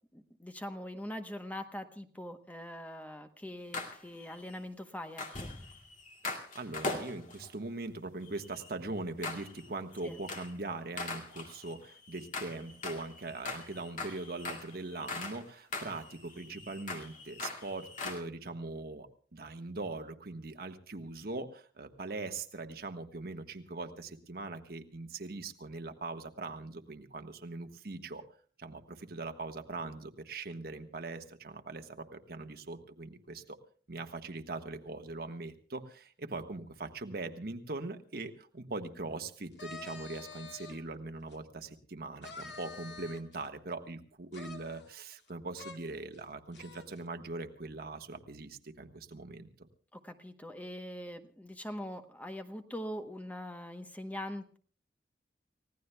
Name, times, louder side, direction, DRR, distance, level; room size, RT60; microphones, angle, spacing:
voice 1, 0.1-5.5 10.0-10.2 49.9-54.6, left 1 dB, 10° left, 7 dB, 1.0 m, -42 dB
sound 1, 3.7-4.6 5.2-7.5 8.2-8.7 9.2-9.7 10.0-10.6 11.0-15.5 15.7-18.2, left 3 dB, 45° left, 2.3 m, -41 dB
voice 2, 6.2-28.2 28.6-33.6 33.9-49.7, right 2 dB, 60° right, 6 dB, 1.4 m, -41 dB
sound 2, 39.5-40.8 41.3-41.4 42.2-43.5 44.3-45.3 45.6-45.8 46.1-46.2 46.5-47.0, left 4 dB, 85° left, 2.1 m, -48 dB
30.0 x 16.5 x 2.3 m, 0.43 s
head